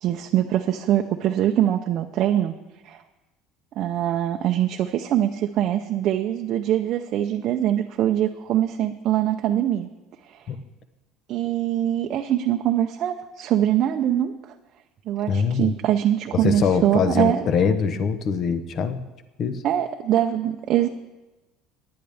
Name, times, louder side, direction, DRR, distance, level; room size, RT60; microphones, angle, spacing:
voice 1, 0.0-2.5 2.8-3.0 3.8-9.9 10.3-10.4 11.3-14.3 15.1-17.5 19.6-20.9, right 11 dB, 45° right, 4 dB, 0.6 m, -23 dB
voice 2, 15.3-15.8 16.3-19.1 19.4-19.6, left 6 dB, 40° left, 11 dB, 0.8 m, -23 dB
18.5 x 10.5 x 3.5 m, 1.1 s
cardioid pair, 150°, 0 cm